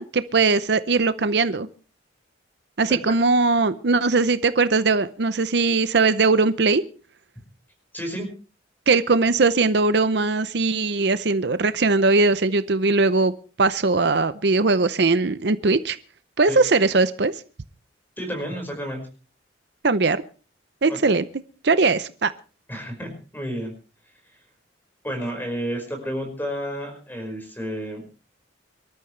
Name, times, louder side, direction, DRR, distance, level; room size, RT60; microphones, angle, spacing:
voice 1, 0.0-1.7 2.8-6.8 8.9-13.3 13.6-16.0 16.4-17.3 19.8-20.2 20.8-21.2 21.6-22.3, right 3 dB, 60° right, 13 dB, 0.7 m, -20 dB
voice 2, 7.9-8.3 16.5-16.6 18.2-19.0 20.9-21.0 22.7-23.7 25.0-28.0, equal, 10° left, 4 dB, 5.3 m, -31 dB
25.0 x 13.0 x 3.3 m, 0.35 s
head